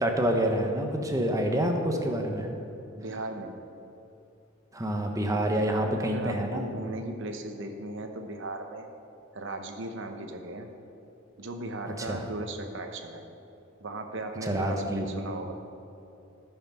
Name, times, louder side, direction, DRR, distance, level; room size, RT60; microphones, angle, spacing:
voice 1, 0.0-2.5 4.7-6.7 12.0-12.2 14.4-15.1, right 1 dB, 15° right, 3 dB, 1.0 m, -27 dB
voice 2, 3.0-3.5 5.5-8.9 9.3-10.7 11.4-13.3 13.8-15.5, right 2 dB, 65° right, 5 dB, 1.0 m, -37 dB
15.0 x 5.9 x 5.4 m, 2.8 s
head